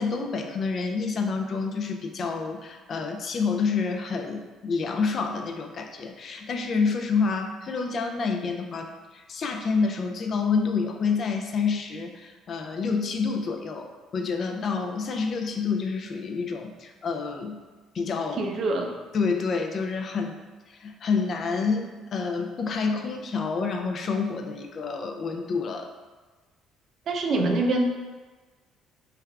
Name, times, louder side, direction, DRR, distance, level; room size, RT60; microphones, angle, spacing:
voice 1, 0.0-17.6 17.9-18.4 19.1-20.4 20.7-25.9, left 5 dB, 45° left, 4 dB, 0.3 m, -28 dB
voice 2, 18.4-18.9 27.1-27.9, right 2 dB, 50° right, 3 dB, 0.4 m, -24 dB
3.3 x 3.3 x 2.3 m, 1.3 s
cardioid pair, 115°, 0 cm